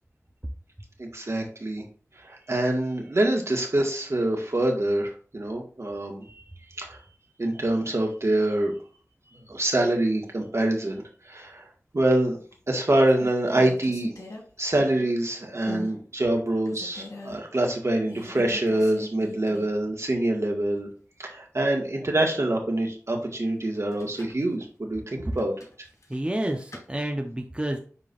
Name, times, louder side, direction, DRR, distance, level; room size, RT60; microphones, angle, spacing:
voice 1, 1.0-1.8 2.2-6.4 6.8-7.0 7.4-8.7 9.5-11.7 11.9-12.4 12.7-14.1 14.6-20.9 21.2-25.6, right 1 dB, 60° right, 1 dB, 1.8 m, -25 dB
sound 1, 12.3-12.7 13.1-15.2 15.6-16.0 16.4-17.4 18.1-19.8 20.2-20.3 23.7-24.4 25.3-26.9, left 2 dB, 80° left, 2.6 m, -41 dB
voice 2, 26.1-27.8, right 1 dB, 20° right, 3 dB, 1.0 m, -29 dB
10.0 x 3.8 x 2.6 m, 0.40 s
wide cardioid pair, 50°, 5 cm